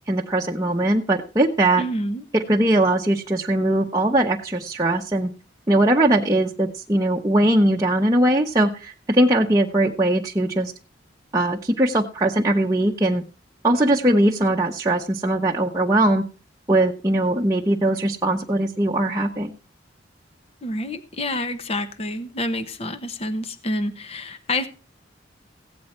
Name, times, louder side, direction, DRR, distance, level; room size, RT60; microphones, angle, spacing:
voice 1, 0.1-1.8 2.3-5.3 5.7-10.7 11.3-13.2 13.6-16.2 16.7-19.5, right 1 dB, 20° right, -2 dB, 0.9 m, -20 dB
voice 2, 1.8-2.2 20.6-24.7, left 1 dB, 30° left, 8 dB, 0.9 m, -28 dB
16.0 x 9.3 x 4.3 m, 0.34 s
head